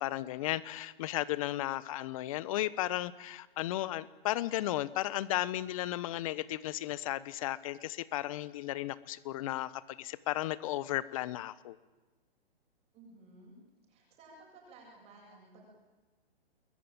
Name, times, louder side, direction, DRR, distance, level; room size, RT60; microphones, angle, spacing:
voice 1, 0.0-11.8, left 15 dB, 35° left, 18 dB, 1.1 m, -34 dB
voice 2, 12.9-13.6 13.9-15.6, right 2 dB, 20° right, -1 dB, 7.8 m, -56 dB
28.5 x 21.5 x 9.1 m, 1.2 s
hypercardioid pair, 150°, 31 cm